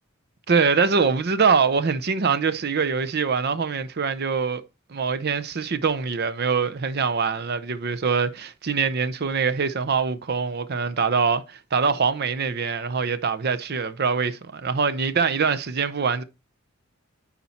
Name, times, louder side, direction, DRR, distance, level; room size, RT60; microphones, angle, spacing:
voice 1, 0.5-4.6 4.9-16.2, right 5 dB, 50° right, 0.6 m, -23 dB
9.9 x 4.2 x 4.2 m
head